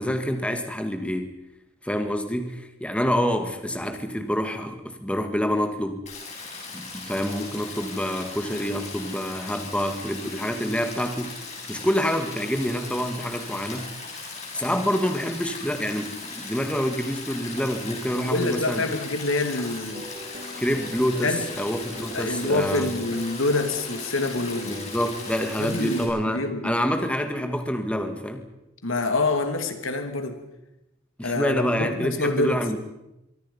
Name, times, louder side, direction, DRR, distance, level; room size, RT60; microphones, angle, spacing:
voice 1, 0.0-1.4 1.8-6.1 6.7-11.4 11.7-13.9 14.5-18.8 20.6-22.9 24.6-28.5 31.2-32.8, equal, 5° left, 1.9 m, -27 dB
Stream, 6.1-26.1, left 3 dB, 35° left, 7.1 m, -38 dB
voice 2, 18.2-20.1 21.2-21.5 22.1-24.9 25.6-26.1 26.3-26.7 28.8-30.4 31.2-32.6, left 2 dB, 75° left, 2.8 m, -26 dB
sound 1, 19.9-25.3, equal, 35° right, 2.6 m, -42 dB
25.5 x 24.0 x 5.6 m
head